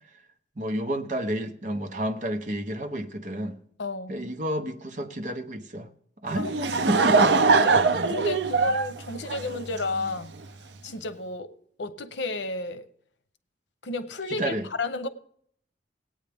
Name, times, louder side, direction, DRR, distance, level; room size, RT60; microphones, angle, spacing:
voice 1, 0.6-3.6 4.1-5.9 6.2-7.4 14.4-14.7, right 1 dB, 45° right, 0.9 m, -30 dB
voice 2, 3.8-4.1 6.3-6.5 7.6-10.3 10.8-11.5 11.8-12.9 13.8-15.1, left 3 dB, 80° left, 0.8 m, -32 dB
Laughter / Crowd, 6.3-10.1, right 4 dB, 70° right, 0.5 m, -22 dB
18.5 x 8.9 x 3.5 m
head